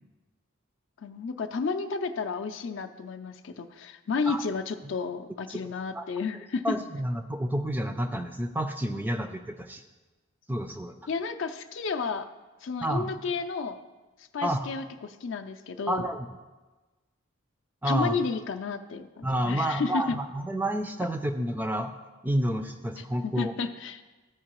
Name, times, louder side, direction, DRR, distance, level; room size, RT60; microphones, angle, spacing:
voice 1, 1.0-6.8 11.1-12.3 12.6-13.8 14.3-16.1 17.8-20.2 23.2-24.0, left 4 dB, 60° left, 9 dB, 0.4 m, -32 dB
voice 2, 6.6-9.8 10.5-10.9 12.8-13.1 14.4-14.7 15.9-16.3 17.8-18.2 19.2-21.9 22.2-23.5, equal, 10° right, 6 dB, 0.3 m, -29 dB
13.5 x 4.6 x 3.0 m, 1.2 s
head